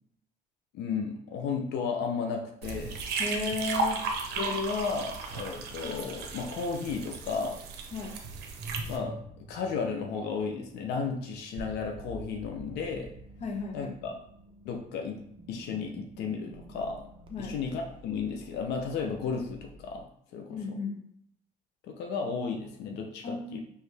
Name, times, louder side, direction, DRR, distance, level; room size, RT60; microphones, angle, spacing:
voice 1, 0.7-3.0 4.4-7.6 8.9-9.2 9.5-13.1 13.7-14.1 14.6-15.2 15.5-17.1 17.4-20.6 21.9-23.6, left 5 dB, 80° left, 2 dB, 0.6 m, -33 dB
sound 1, 2.6-9.0, right 3 dB, 75° right, 0.7 m, -35 dB
voice 2, 3.2-4.0 7.9-8.1 13.4-13.9 17.3-17.6 20.5-21.0 23.2-23.6, left 2 dB, 40° left, 3 dB, 0.9 m, -34 dB
sound 2, 8.6-20.0, right 1 dB, 30° right, 0.7 m, -48 dB
4.5 x 3.1 x 3.3 m, 0.69 s
cardioid pair, 110°, 17 cm